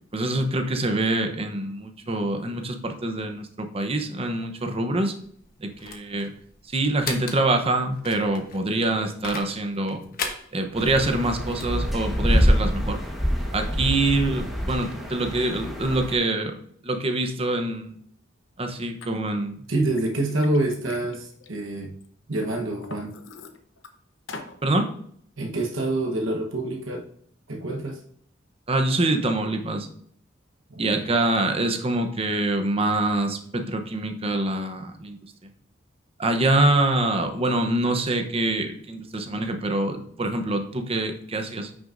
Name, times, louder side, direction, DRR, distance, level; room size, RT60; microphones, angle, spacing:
voice 1, 0.1-5.1 5.6-6.3 6.7-10.0 10.5-13.0 13.5-16.6 16.8-17.9 18.6-19.6 24.6-24.9 28.7-29.9 30.8-35.2 36.2-41.7, right 2 dB, 30° right, 6 dB, 0.8 m, -25 dB
sound 1, 5.2-11.8, left 5 dB, 50° left, 1.1 m, -38 dB
sound 2, 10.7-16.2, equal, ahead, 1.3 m, -25 dB
Liquid, 19.0-19.1 19.6-22.1 22.5-23.9 24.3-24.6, left 3 dB, 70° left, 0.9 m, -43 dB
voice 2, 19.7-21.9 22.3-23.2 25.4-27.1 27.5-28.0 30.7-31.1, right 2 dB, 85° right, 1 dB, 1.1 m, -27 dB
9.3 x 6.1 x 2.6 m, 0.64 s
head